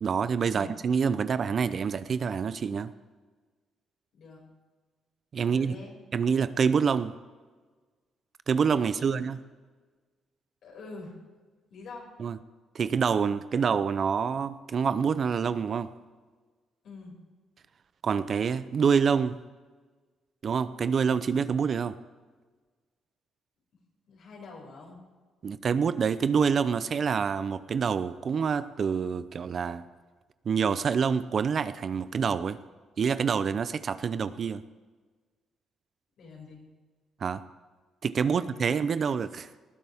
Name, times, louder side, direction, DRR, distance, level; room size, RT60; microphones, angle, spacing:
voice 1, 0.0-2.9 5.3-5.8 6.1-7.1 8.5-9.4 12.2-12.4 12.7-15.9 18.0-19.4 20.4-22.0 25.4-29.8 30.5-32.6 33.0-34.6 37.2-37.4 38.0-39.5, right 6 dB, 50° right, 14 dB, 0.6 m, -27 dB
voice 2, 5.4-6.0 8.8-9.1 10.6-11.1 11.7-12.1 16.8-17.1 24.1-25.0 36.2-36.6 38.2-38.7, left 3 dB, 70° left, -3 dB, 6.2 m, -45 dB
19.5 x 15.5 x 3.6 m, 1.4 s
cardioid pair, 90°, 0 cm